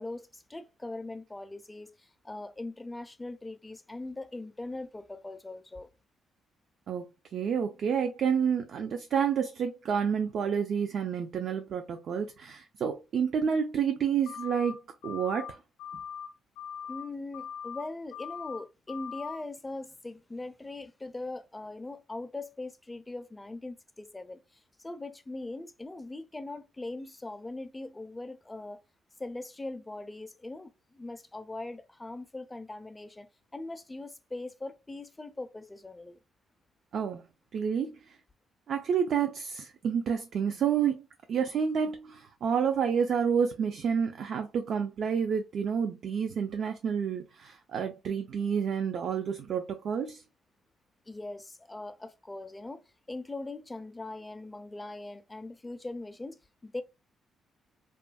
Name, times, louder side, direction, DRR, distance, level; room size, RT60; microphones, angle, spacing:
voice 1, 0.0-5.9 16.9-28.8 29.2-36.2 51.1-52.8 53.1-56.8, left 2 dB, 15° left, 0.4 m, -41 dB
voice 2, 7.3-14.8 15.0-15.6 36.9-37.2 37.5-38.1 38.7-41.0 41.3-50.2, right 7 dB, 65° right, 0.4 m, -29 dB
sound 1, 14.3-14.7 15.0-15.5 15.8-16.3 16.6-17.0 17.3-17.8 18.1-18.6 18.9-19.4, left 8 dB, 90° left, 0.5 m, -40 dB
2.6 x 2.4 x 2.2 m
cardioid pair, 90°, 0 cm